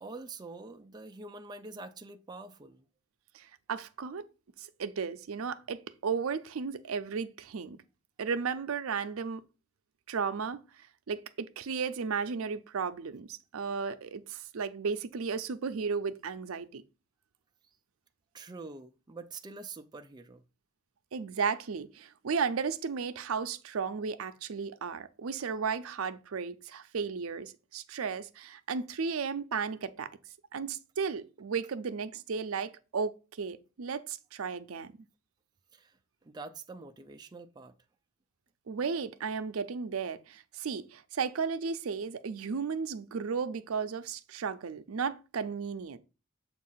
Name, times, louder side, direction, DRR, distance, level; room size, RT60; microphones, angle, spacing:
voice 1, 0.0-2.8 18.3-20.4 35.7-37.8, right 3 dB, 20° right, 0.4 m, -46 dB
voice 2, 3.3-4.2 4.6-7.8 8.2-9.4 10.1-10.6 11.1-16.8 21.1-30.1 30.5-34.9 38.7-46.0, right 5 dB, 85° right, 0.5 m, -34 dB
7.3 x 2.5 x 5.5 m
head